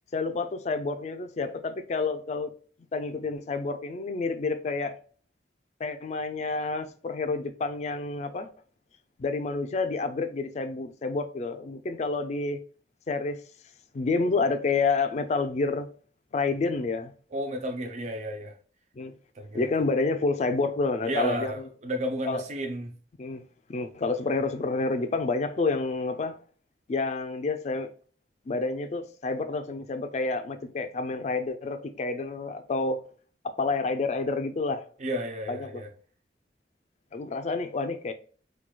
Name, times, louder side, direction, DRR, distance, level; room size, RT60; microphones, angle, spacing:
voice 1, 0.1-2.5 2.9-5.0 5.8-8.5 9.2-12.6 13.1-13.4 13.9-15.9 16.3-17.1 19.0-19.1 19.5-21.7 22.3-22.4 23.2-23.4 23.7-26.4 26.9-27.9 28.5-33.0 33.4-34.9 35.5-35.8 37.1-38.1, left 3 dB, 40° left, 0.3 m, -29 dB
voice 2, 17.3-18.6 19.4-19.7 21.1-23.0 35.0-35.9, equal, 40° right, 0.4 m, -32 dB
4.5 x 2.3 x 2.2 m
head